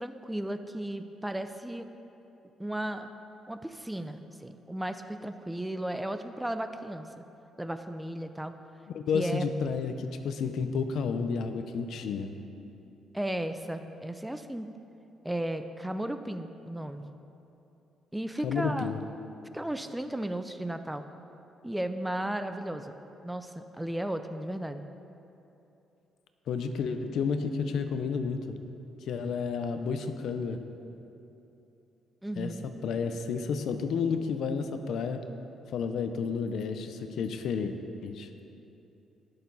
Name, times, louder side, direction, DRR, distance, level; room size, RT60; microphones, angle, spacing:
voice 1, 0.0-1.9 2.6-3.1 3.5-7.2 7.6-8.5 9.1-9.5 13.1-14.7 15.2-17.1 18.1-18.9 19.5-21.1 21.6-23.0 23.2-24.9 32.2-32.6, right 1 dB, 5° right, 9 dB, 0.5 m, -35 dB
voice 2, 8.9-12.4 18.4-19.0 26.5-28.6 29.1-30.6 32.4-32.5 32.8-35.2 35.7-37.7 38.0-38.3, left 5 dB, 75° left, 8 dB, 0.7 m, -31 dB
18.5 x 6.8 x 4.1 m, 2.9 s
cardioid pair, 90°, 0 cm